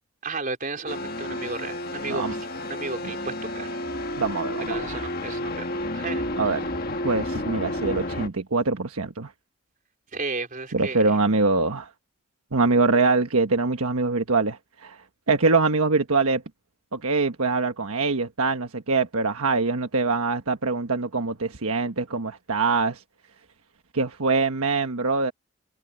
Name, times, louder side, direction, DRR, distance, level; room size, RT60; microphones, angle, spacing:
voice 1, 0.2-2.2 2.6-3.7 4.6-6.6 10.1-11.0, right 3 dB, 40° right, 4.4 m, -34 dB
sound 1, 0.9-8.3, left 1 dB, 40° left, 1.7 m, -31 dB
voice 2, 4.2-5.1 6.4-6.6 7.0-9.3 10.7-11.9 12.5-15.0 15.3-16.4 16.9-23.0 23.9-25.3, right 3 dB, 75° right, 1.3 m, -24 dB
head